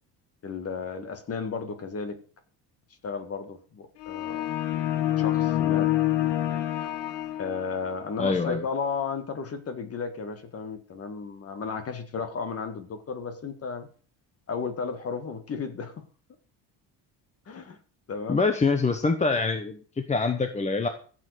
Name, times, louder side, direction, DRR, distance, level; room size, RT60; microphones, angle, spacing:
voice 1, 0.4-2.2 3.0-4.5 5.2-5.9 7.4-13.9 14.5-16.0 17.5-17.8 18.1-18.4, left 5 dB, 30° left, 1.9 m, -34 dB
sound 1, 4.0-8.0, left 13 dB, 75° left, 1.6 m, -27 dB
voice 2, 8.2-8.6 18.3-20.9, left 4 dB, 15° left, 1.0 m, -25 dB
15.0 x 7.9 x 6.6 m
cardioid pair, 155°, 44 cm